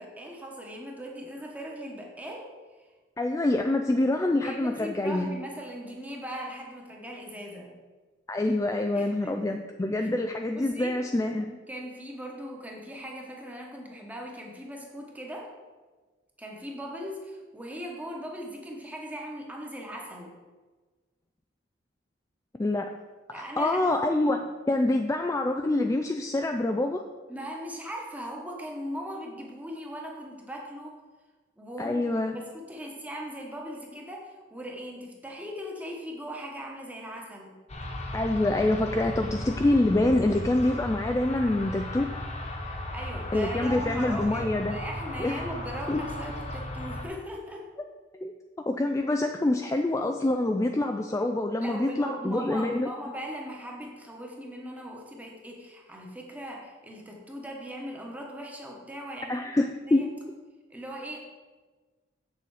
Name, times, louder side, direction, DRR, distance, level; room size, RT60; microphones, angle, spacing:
voice 1, 0.0-2.9 4.4-7.7 8.9-9.6 10.0-10.1 10.6-11.0 11.7-15.5 16.4-20.3 23.3-23.8 27.3-31.0 31.6-32.0 32.3-37.5 42.7-47.7 51.6-59.5 59.9-60.1 60.7-61.2, equal, 10° right, 0 dB, 1.2 m, -39 dB
voice 2, 3.2-5.3 8.3-11.6 22.6-22.9 23.3-27.1 31.8-32.3 38.1-42.1 43.3-44.8 45.2-45.5 45.9-46.0 48.2-48.3 48.7-52.9 59.3-60.1, left 2 dB, 15° left, 4 dB, 0.3 m, -26 dB
sound 1, 37.7-47.0, left 1 dB, 35° left, 1.2 m, -36 dB
7.6 x 6.7 x 4.9 m, 1.3 s
head